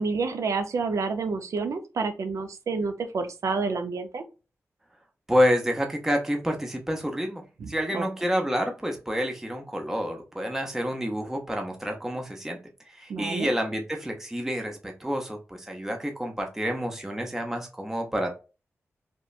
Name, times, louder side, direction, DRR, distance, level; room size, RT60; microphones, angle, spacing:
voice 1, 0.0-4.2 7.6-8.1 13.1-13.5, right 4 dB, 85° right, 7 dB, 0.5 m, -29 dB
voice 2, 5.3-12.6 12.9-18.3, equal, 5° right, 2 dB, 0.5 m, -28 dB
2.9 x 2.1 x 2.3 m, 0.31 s
wide cardioid pair, 130°, 5 cm